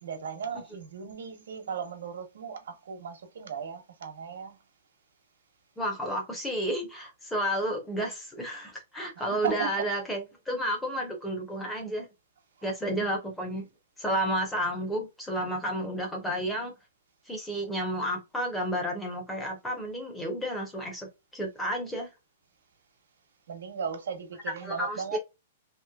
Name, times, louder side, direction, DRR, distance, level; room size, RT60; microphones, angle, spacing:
voice 1, 0.0-4.6 9.2-9.9 12.6-12.7 23.5-25.2, right 6 dB, 75° right, 1.0 m, -36 dB
voice 2, 5.8-10.2 10.5-12.1 12.6-13.7 14.0-16.7 17.3-22.1 24.6-25.2, equal, 5° left, 0.8 m, -31 dB
3.0 x 3.0 x 2.3 m
hypercardioid pair, 180°, 0 cm